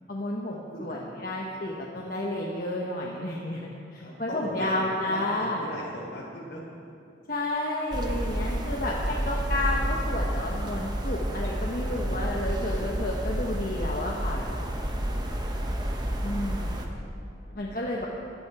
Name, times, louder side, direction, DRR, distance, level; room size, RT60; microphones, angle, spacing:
voice 1, 0.1-5.6 7.3-14.9 16.2-16.9 17.5-18.1, left 1 dB, 50° left, -3 dB, 1.2 m, -31 dB
voice 2, 0.7-1.6 1.9-2.1 4.0-6.6 17.3-18.1, left 1 dB, 75° left, -4 dB, 4.1 m, -40 dB
sound 1, 7.9-16.9, equal, 20° right, 1.1 m, -30 dB
15.5 x 12.0 x 4.8 m, 2.7 s
head